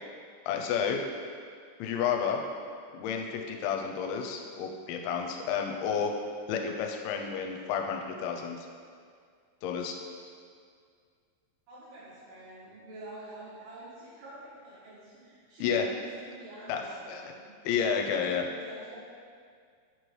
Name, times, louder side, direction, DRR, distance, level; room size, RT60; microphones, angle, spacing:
voice 1, 0.5-1.0 1.8-2.4 2.9-6.1 6.5-8.7 9.6-10.0 15.6-15.8 16.7-16.8 17.1-17.2 17.7-18.5, left 7 dB, 85° left, 2 dB, 2.9 m, -30 dB
voice 2, 11.7-17.5 18.2-19.0, right 1 dB, 65° right, -10 dB, 3.5 m, -47 dB
7.8 x 4.5 x 3.1 m, 2.1 s
omnidirectional pair, 5.3 m